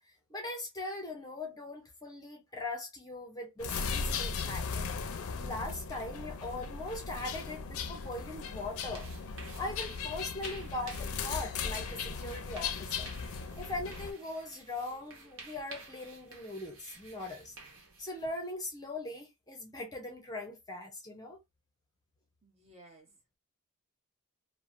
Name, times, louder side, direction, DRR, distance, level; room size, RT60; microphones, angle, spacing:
voice 1, 0.3-4.8 5.4-9.1 9.6-13.1 13.6-17.5 18.0-21.4, left 2 dB, 15° left, 0.7 m, -40 dB
sound 1, 3.6-14.1, left 5 dB, 75° left, 0.5 m, -37 dB
sound 2, 8.3-18.5, right 3 dB, 65° right, 1.0 m, -52 dB
voice 2, 22.4-23.4, right 1 dB, 30° right, 0.9 m, -58 dB
3.0 x 2.1 x 2.5 m
head